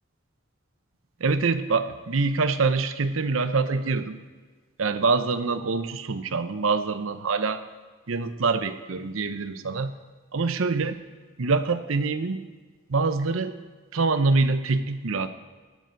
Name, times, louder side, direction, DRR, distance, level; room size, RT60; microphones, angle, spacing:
voice 1, 1.2-4.2 4.8-7.6 8.1-9.9 10.3-11.0 11.4-12.4 12.9-13.6 13.9-15.3, right 4 dB, 75° right, 10 dB, 0.7 m, -25 dB
17.0 x 9.4 x 4.6 m, 1.4 s
head